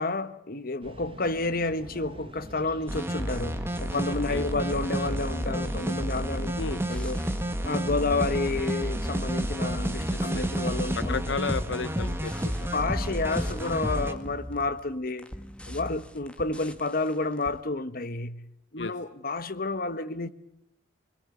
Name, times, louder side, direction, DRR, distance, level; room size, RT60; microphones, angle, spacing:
voice 1, 0.0-6.5 6.9-7.2 7.6-11.2 12.7-15.3 15.7-18.4 18.7-20.3, left 3 dB, 50° left, 1.2 m, -30 dB
sound 1, 0.8-8.0, right 1 dB, 30° right, 1.4 m, -45 dB
sound 2, 2.9-14.1, equal, 15° right, 1.8 m, -30 dB
voice 2, 4.1-4.4 6.6-6.8 10.1-10.4 10.9-12.7 18.8-18.9, left 4 dB, 70° left, 0.9 m, -33 dB
sound 3, 4.5-17.6, equal, 5° left, 1.5 m, -42 dB
26.5 x 20.5 x 9.3 m
head